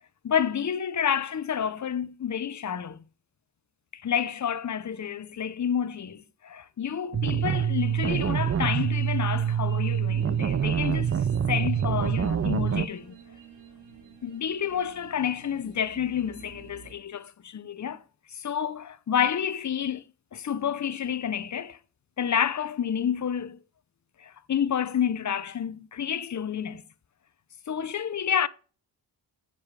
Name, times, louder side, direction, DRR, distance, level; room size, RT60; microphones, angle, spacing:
voice 1, 0.2-3.0 3.9-11.1 11.5-13.2 14.2-18.0 18.3-20.0 20.3-21.8 22.2-23.6 24.2-26.8 27.7-28.5, left 8 dB, 40° left, 0.7 m, -29 dB
sound 1, 7.1-12.9, right 8 dB, 35° right, 0.5 m, -26 dB
sound 2, 7.8-16.9, right 5 dB, 65° right, 2.9 m, -50 dB
7.2 x 7.1 x 4.7 m
cardioid pair, 75°, 44 cm